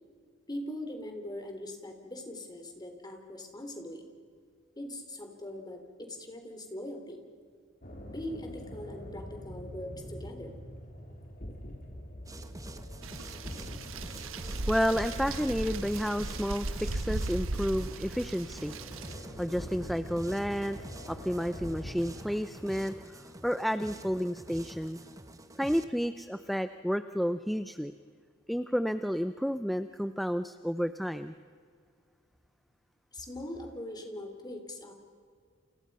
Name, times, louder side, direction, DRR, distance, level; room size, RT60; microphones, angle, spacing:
voice 1, 0.5-4.1 4.8-7.2 8.1-10.6 33.1-34.9, left 1 dB, 20° left, 5 dB, 3.6 m, -41 dB
sound 1, 7.8-21.9, equal, 45° left, 4.2 m, -45 dB
sound 2, 12.2-25.8, right 1 dB, 15° right, 1.3 m, -47 dB
sound 3, 13.0-19.1, right 2 dB, 85° right, 1.2 m, -37 dB
voice 2, 14.4-25.0 25.6-27.9 28.5-31.3, equal, ahead, 10 dB, 0.6 m, -31 dB
30.0 x 28.5 x 5.6 m, 2.1 s
head